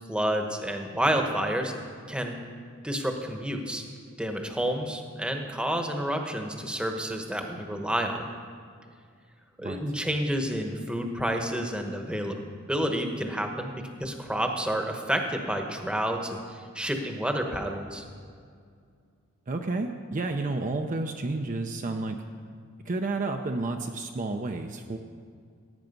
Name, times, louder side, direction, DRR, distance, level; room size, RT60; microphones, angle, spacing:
voice 1, 0.1-1.7 2.1-2.4 2.8-3.8 4.2-8.2 9.6-12.4 12.7-18.0, equal, 5° right, 4 dB, 1.0 m, -29 dB
voice 2, 19.5-22.2 22.9-25.0, right 2 dB, 40° right, 4 dB, 0.6 m, -31 dB
17.0 x 8.9 x 5.3 m, 2.2 s
head